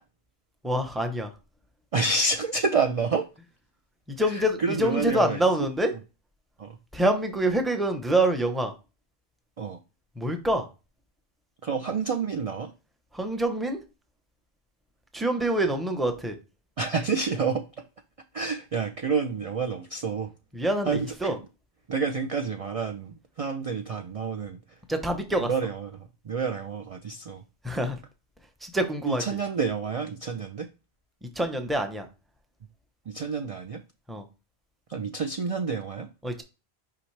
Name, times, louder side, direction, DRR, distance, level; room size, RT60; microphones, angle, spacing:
voice 1, 0.6-1.3 4.1-5.9 6.9-8.7 10.2-10.7 13.1-13.8 15.1-16.4 20.5-21.4 24.9-25.5 27.6-28.0 28.6-29.2 31.4-32.1 34.1-34.2 36.2-36.4, right 1 dB, ahead, 5 dB, 0.7 m, -26 dB
voice 2, 1.9-3.3 4.2-5.4 6.6-6.8 9.6-9.8 11.6-12.7 16.8-17.6 18.3-20.3 20.8-21.5 21.9-24.6 25.4-27.4 29.1-30.7 33.1-33.8 34.9-36.1, right 4 dB, 45° right, 5 dB, 0.5 m, -29 dB
5.9 x 5.0 x 3.3 m, 0.30 s
omnidirectional pair, 1.1 m